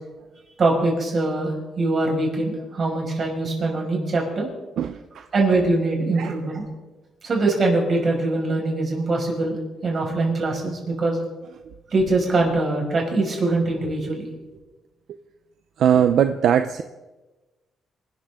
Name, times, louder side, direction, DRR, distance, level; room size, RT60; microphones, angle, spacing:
voice 1, 0.6-4.5 5.3-6.6 7.2-11.2 11.9-14.3, right 2 dB, 45° right, 0 dB, 5.9 m, -23 dB
voice 2, 4.8-5.2 6.2-6.3 15.8-16.8, right 9 dB, 70° right, 9 dB, 0.7 m, -20 dB
27.0 x 13.0 x 3.8 m, 1.1 s
cardioid pair, 115°, 0 cm